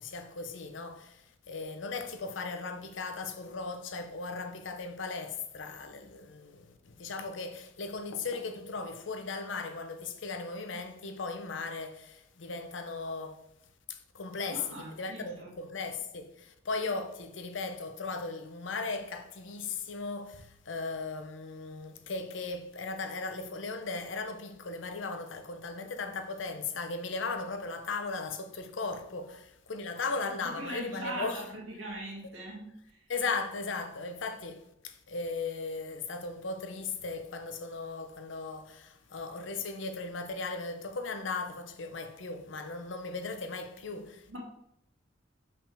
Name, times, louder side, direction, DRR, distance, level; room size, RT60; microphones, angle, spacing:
voice 1, 0.0-13.4 13.9-31.5 33.1-44.3, left 4 dB, 75° left, 0.7 m, -37 dB
voice 2, 14.5-15.5 30.6-33.0 44.3-44.4, right 1 dB, 85° right, 2.3 m, -41 dB
5.4 x 5.2 x 3.5 m
head